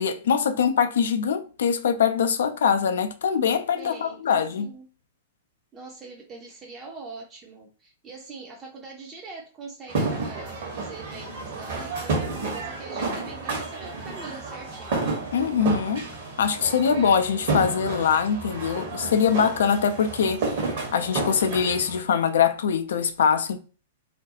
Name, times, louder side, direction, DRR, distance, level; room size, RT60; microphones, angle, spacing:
voice 1, 0.0-4.7 15.3-16.1 16.4-20.5 20.9-23.6, left 7 dB, 60° left, 0.3 m, -23 dB
voice 2, 3.7-4.9 5.7-15.1, right 3 dB, 20° right, 0.5 m, -43 dB
sound 1, 9.9-22.0, right 3 dB, 50° right, 1.0 m, -31 dB
2.5 x 2.2 x 2.7 m
figure-of-eight pair, 105°, 0 cm